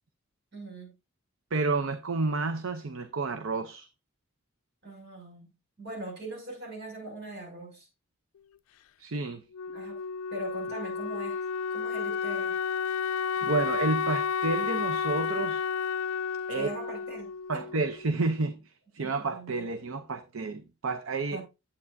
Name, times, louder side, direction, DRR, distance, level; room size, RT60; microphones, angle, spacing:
voice 1, 0.5-0.9 4.8-5.5 5.8-7.9 9.7-10.0 10.3-11.4 11.7-12.5 16.5-17.7 19.0-19.7 21.3-21.4, right 2 dB, 55° right, 6.1 m, -41 dB
voice 2, 1.5-3.9 9.0-9.4 13.4-15.6 16.5-16.7 17.5-21.4, right 3 dB, 70° right, 0.7 m, -30 dB
Wind instrument woodwind instrument, 9.5-18.2, left 6 dB, 85° left, 0.4 m, -31 dB
11.0 x 8.4 x 2.6 m
head